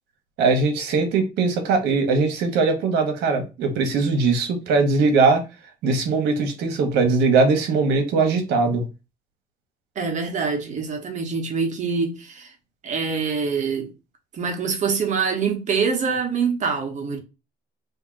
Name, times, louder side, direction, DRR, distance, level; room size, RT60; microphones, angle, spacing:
voice 1, 0.4-5.4 5.8-8.8, right 4 dB, 80° right, 1.0 m, -20 dB
voice 2, 10.0-12.5 12.8-13.9 14.3-17.2, right 5 dB, 45° right, 1.0 m, -25 dB
2.8 x 2.6 x 3.7 m
cardioid pair, 110°, 17 cm